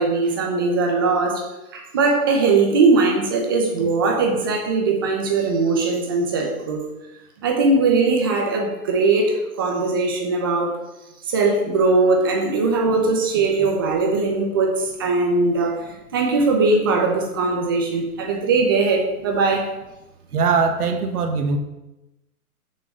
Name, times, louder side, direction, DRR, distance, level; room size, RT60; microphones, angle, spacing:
voice 1, 0.0-1.4 1.7-6.9 7.4-10.9 11.3-19.7, right 3 dB, 15° right, 1 dB, 0.7 m, -20 dB
voice 2, 20.3-21.6, right 5 dB, 70° right, 6 dB, 1.3 m, -21 dB
6.5 x 6.4 x 6.6 m, 0.96 s
hypercardioid pair, 165°, 46 cm